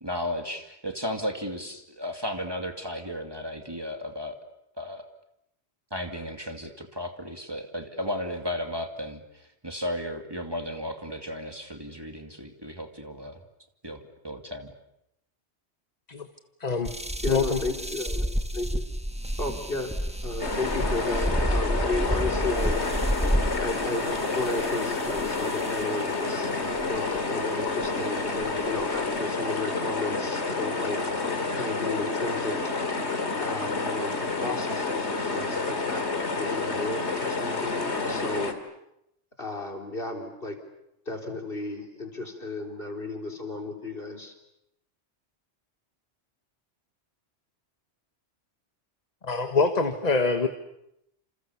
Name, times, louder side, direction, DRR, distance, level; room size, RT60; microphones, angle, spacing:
voice 1, 0.0-4.4 4.8-5.0 5.9-13.4 13.8-14.7, left 1 dB, 20° right, 4 dB, 2.4 m, -34 dB
voice 2, 16.6-16.9 17.3-17.6 49.2-50.5, left 4 dB, 40° left, 7 dB, 1.4 m, -25 dB
sound 1, 16.9-26.0 26.8-27.2 27.8-27.9 28.4-29.2, equal, 5° right, 1.4 m, -30 dB
voice 3, 17.2-18.3 18.5-18.8 19.4-19.9 20.2-22.8 23.6-24.1 24.3-31.0 31.5-32.7 33.4-36.0 36.3-38.5 39.4-40.6 41.1-44.3, left 2 dB, 55° left, 3 dB, 4.2 m, -33 dB
sound 2, 20.4-38.5, left 3 dB, 85° left, 2.9 m, -29 dB
29.0 x 28.0 x 7.0 m, 0.82 s
omnidirectional pair, 1.1 m